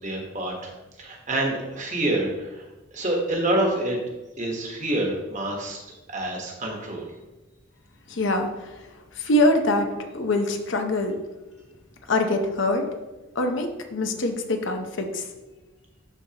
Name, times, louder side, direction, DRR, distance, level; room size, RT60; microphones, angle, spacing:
voice 1, 0.0-0.7 1.0-2.6 2.9-4.0 4.4-5.8 6.1-7.1, right 1 dB, 35° right, 0 dB, 1.2 m, -27 dB
voice 2, 8.1-11.2 12.1-12.9 13.3-15.3, left 1 dB, 70° left, 5 dB, 0.8 m, -24 dB
12.0 x 4.1 x 2.9 m, 1.1 s
head